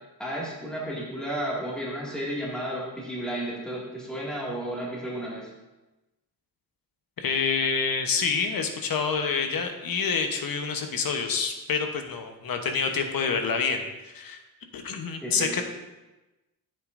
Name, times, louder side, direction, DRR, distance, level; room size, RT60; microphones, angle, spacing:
voice 1, 0.2-5.5 15.2-15.6, right 1 dB, ahead, -5 dB, 2.1 m, -33 dB
voice 2, 7.2-14.4 14.7-15.6, left 5 dB, 65° left, 5 dB, 1.1 m, -27 dB
9.9 x 8.1 x 2.6 m, 1.1 s
cardioid pair, 100°, 38 cm